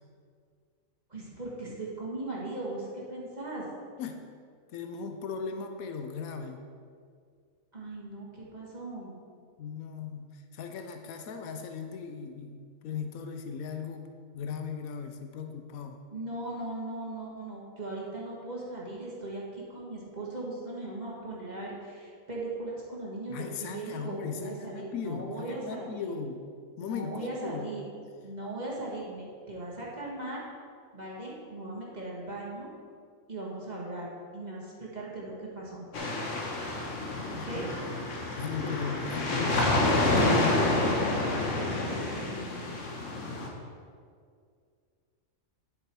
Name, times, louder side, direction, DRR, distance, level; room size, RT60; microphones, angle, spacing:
voice 1, 1.1-3.6 7.7-9.2 16.1-26.1 26.8-27.9 28.2-30.4 30.9-32.7 33.3-35.9 37.4-37.7 41.5-42.6, right 2 dB, 30° right, -5 dB, 1.8 m, -38 dB
voice 2, 4.7-6.6 9.6-14.1 14.3-16.0 23.3-26.4 26.8-27.8 37.3-37.4 38.4-40.8, left 6 dB, 85° left, 6 dB, 1.1 m, -38 dB
sound 1, 35.9-43.5, left 2 dB, 65° left, 1.5 m, -28 dB
10.0 x 7.3 x 4.6 m, 2.2 s
omnidirectional pair, 1.4 m